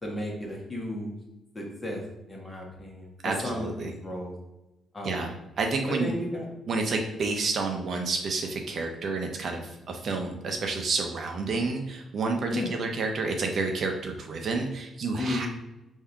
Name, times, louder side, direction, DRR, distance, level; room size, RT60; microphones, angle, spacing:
voice 1, 0.0-1.1 1.5-2.0 2.3-4.3 4.9-5.2 5.9-6.5 12.5-12.7 15.2-15.5, left 1 dB, 20° left, -2 dB, 1.5 m, -33 dB
voice 2, 3.2-3.9 5.0-5.3 5.6-6.1 6.7-15.5, right 3 dB, 55° right, 3 dB, 0.6 m, -29 dB
3.5 x 2.7 x 4.6 m, 0.98 s
cardioid pair, 90°, 0 cm